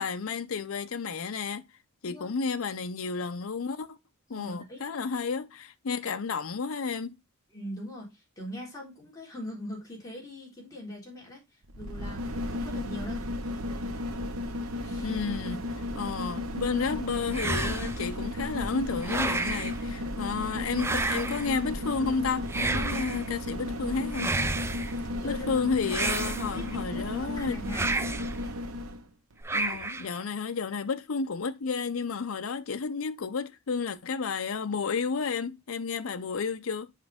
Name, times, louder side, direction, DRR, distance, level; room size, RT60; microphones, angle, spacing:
voice 1, 0.0-1.6 2.0-4.0 4.3-7.2 15.0-15.6 15.9-24.4 25.2-27.6 29.5-36.9, left 5 dB, 75° left, 0.6 m, -32 dB
voice 2, 4.3-4.8 7.5-13.2 14.8-15.1 25.2-27.9, equal, 15° left, 3.8 m, -42 dB
sound 1, 11.6-29.0 29.4-29.5, left 1 dB, 90° right, 1.0 m, -34 dB
sound 2, 17.3-18.1 19.0-19.8 20.7-21.6 22.5-23.3 24.1-24.9 25.9-26.8 27.7-28.4 29.4-30.1, right 3 dB, 10° right, 0.4 m, -31 dB
7.4 x 5.2 x 3.4 m
head